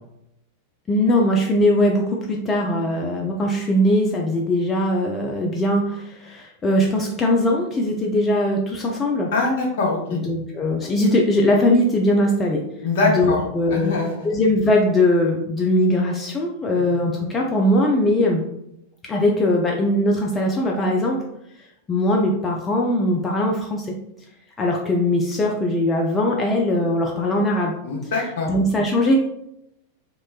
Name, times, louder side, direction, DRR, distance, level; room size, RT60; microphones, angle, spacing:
voice 1, 0.9-9.3 10.1-12.6 13.0-18.4 19.0-21.2 21.9-23.9 24.6-27.8 28.0-28.1 28.4-29.1, left 1 dB, 20° left, -1 dB, 0.4 m, -20 dB
voice 2, 9.3-10.2 12.8-13.4 13.7-14.3 16.8-17.0 27.8-28.5, left 3 dB, 55° left, -1 dB, 0.8 m, -23 dB
3.1 x 2.9 x 2.3 m, 0.80 s
figure-of-eight pair, 90°, 0 cm